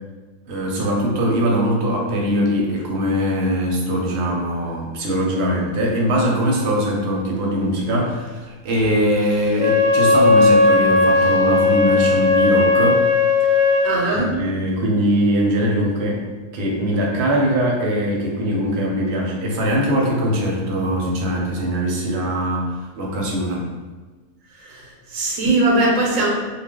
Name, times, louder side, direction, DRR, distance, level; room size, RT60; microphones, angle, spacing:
voice 1, 0.5-13.0 14.1-16.2 16.5-23.7, equal, 60° right, -2 dB, 0.8 m, -21 dB
Wind instrument woodwind instrument, 9.5-14.0, left 3 dB, 40° left, 0.6 m, -16 dB
voice 2, 13.8-14.4 24.6-26.3, right 2 dB, 85° right, -2 dB, 1.0 m, -20 dB
2.4 x 2.1 x 3.5 m, 1.3 s
omnidirectional pair, 1.4 m